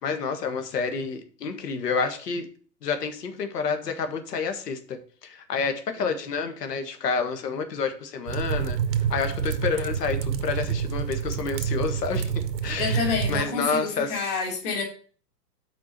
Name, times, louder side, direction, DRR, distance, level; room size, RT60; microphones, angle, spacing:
voice 1, 0.0-2.5 2.8-8.8 9.1-14.4, left 5 dB, 70° left, 7 dB, 1.6 m, -29 dB
sound 1, 8.3-13.4, right 7 dB, 90° right, 1.0 m, -28 dB
voice 2, 12.8-14.8, left 5 dB, 35° left, -1 dB, 3.0 m, -28 dB
6.1 x 4.5 x 6.6 m, 0.42 s
hypercardioid pair, 165°, 50 cm